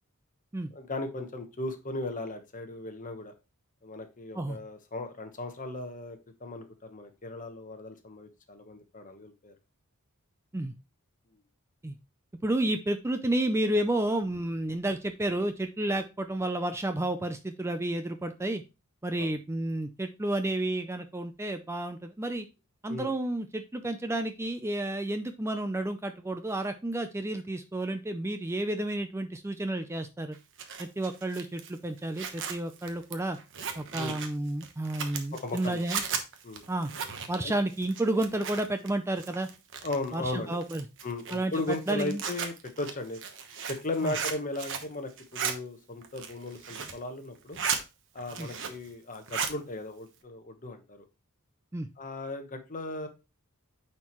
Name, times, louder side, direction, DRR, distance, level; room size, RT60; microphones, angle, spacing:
voice 1, 0.7-3.3 3.8-9.5 19.2-19.3 22.9-23.1 34.0-34.1 35.3-35.9 36.4-36.6 37.4-37.5 39.8-40.6 41.0-43.2 43.6-47.6 48.1-51.0 52.0-53.1, left 2 dB, 35° left, 6 dB, 1.2 m, -36 dB
voice 2, 12.4-18.6 19.0-22.5 22.8-30.4 30.8-33.4 33.8-36.0 36.7-36.9 37.3-39.5 40.1-40.8 41.3-42.2 44.0-44.1 48.4-48.5 51.7-51.9, right 1 dB, 10° right, 8 dB, 0.4 m, -31 dB
Zipper (clothing), 30.3-38.9 39.2-40.1 40.6-44.9 45.2-45.5 46.0-47.0 47.3-47.8 48.2-48.9 49.1-49.6, right 6 dB, 60° right, 1.1 m, -36 dB
9.2 x 4.5 x 3.0 m, 0.27 s
head